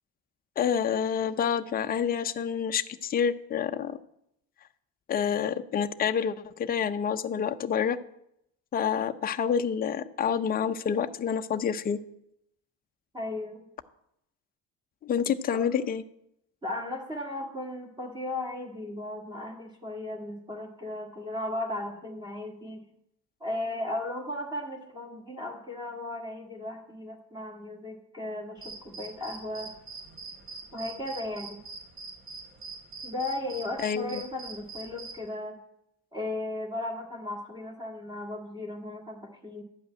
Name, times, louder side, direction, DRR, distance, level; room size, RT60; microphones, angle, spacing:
voice 1, 0.6-4.0 5.1-8.0 8.7-12.0 15.0-16.0 33.8-34.2, left 7 dB, 25° left, 8 dB, 0.6 m, -28 dB
voice 2, 13.1-13.6 15.5-15.6 16.6-22.8 23.4-29.7 30.7-31.6 33.0-35.6 36.1-39.6, left 1 dB, 15° right, 0 dB, 1.7 m, -36 dB
sound 1, 28.6-35.3, right 3 dB, 35° right, 2.2 m, -43 dB
12.0 x 5.4 x 8.9 m, 0.78 s
cardioid pair, 140°, 36 cm